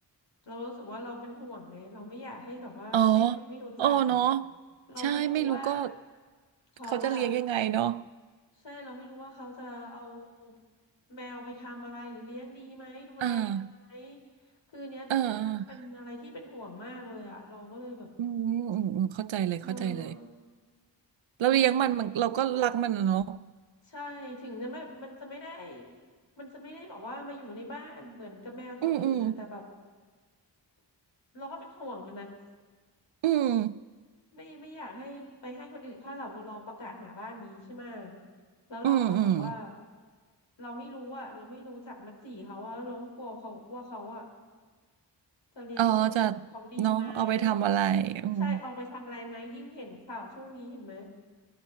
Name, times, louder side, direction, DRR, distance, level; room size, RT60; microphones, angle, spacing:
voice 1, 0.4-4.2 4.9-5.8 6.7-7.3 8.6-10.5 11.1-13.4 13.8-14.2 14.7-18.1 19.6-20.2 21.5-21.7 22.3-22.9 23.8-25.9 26.4-29.6 31.3-32.3 34.3-38.1 38.7-39.7 40.6-44.3 45.5-46.2 46.5-47.6 48.4-51.0, left 1 dB, 70° left, 3.5 m, -42 dB
voice 2, 2.9-3.4 3.8-4.5 5.0-5.9 6.9-8.0 13.2-13.7 15.1-15.7 18.2-20.1 21.4-23.5 28.8-29.3 33.2-33.8 38.8-39.5 45.8-46.4 46.8-48.6, right 10 dB, 90° right, 0.6 m, -26 dB
20.5 x 11.5 x 5.7 m
cardioid pair, 55°, 45 cm